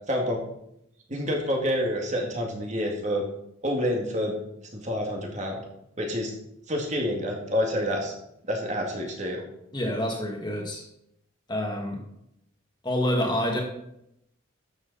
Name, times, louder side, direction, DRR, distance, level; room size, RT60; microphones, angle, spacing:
voice 1, 0.1-0.4 1.1-3.2 3.6-4.4 4.7-5.6 6.0-6.3 6.7-8.1 8.5-9.4, equal, 35° right, 1 dB, 2.1 m, -28 dB
voice 2, 9.7-10.8 11.5-12.0 12.8-13.6, left 1 dB, 20° left, 0 dB, 2.0 m, -27 dB
12.5 x 7.8 x 4.1 m, 0.78 s
head